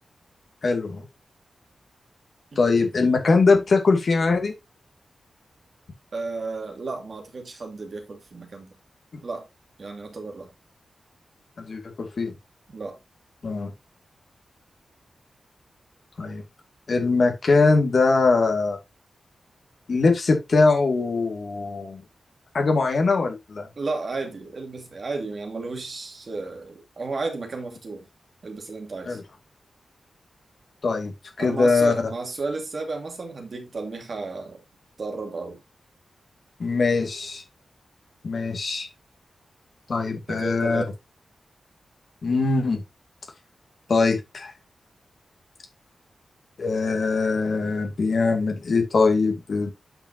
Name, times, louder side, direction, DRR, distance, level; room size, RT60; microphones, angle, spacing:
voice 1, 0.6-1.0 2.6-4.5 11.7-12.3 13.4-13.7 16.2-16.4 16.9-18.8 19.9-22.0 22.5-23.7 29.1-29.2 30.8-31.1 31.4-31.9 36.6-37.4 38.2-38.9 39.9-40.8 42.2-42.8 43.9-44.5 46.6-49.7, left 3 dB, 60° left, 2.3 m, -21 dB
voice 2, 2.5-2.8 6.1-8.7 9.2-9.5 9.8-10.5 12.7-13.0 23.8-28.0 28.4-29.2 31.4-34.6 35.0-35.6 40.3-40.9, right 3 dB, 55° right, 2.4 m, -33 dB
8.8 x 5.9 x 2.8 m
wide cardioid pair, 90°, 0 cm